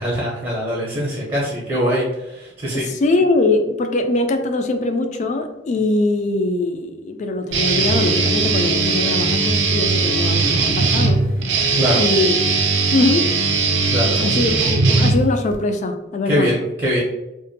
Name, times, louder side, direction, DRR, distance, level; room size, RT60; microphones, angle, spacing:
voice 1, 0.0-2.9 11.7-12.0 13.9-14.2 16.2-17.0, equal, 30° right, -5 dB, 0.6 m, -22 dB
voice 2, 2.7-11.2 11.9-12.4 12.9-13.3 14.2-16.5, left 2 dB, 40° left, 6 dB, 0.3 m, -21 dB
Guitar, 7.5-15.5, right 3 dB, 90° right, 0.5 m, -19 dB
2.5 x 2.1 x 2.6 m, 0.95 s
head